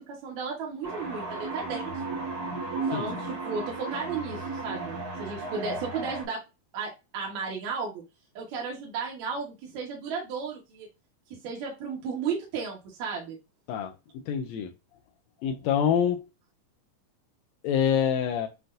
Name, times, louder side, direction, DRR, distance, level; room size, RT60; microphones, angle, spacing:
voice 1, 0.0-2.0 2.7-6.4 6.7-8.0 8.4-10.9 11.4-13.4, right 5 dB, 65° right, 2.4 m, -34 dB
sound 1, 0.8-6.2, right 3 dB, 50° right, 1.2 m, -34 dB
voice 2, 14.3-14.7 15.4-16.2 17.6-18.5, left 8 dB, 85° left, 1.5 m, -25 dB
7.7 x 2.7 x 2.5 m
omnidirectional pair, 3.7 m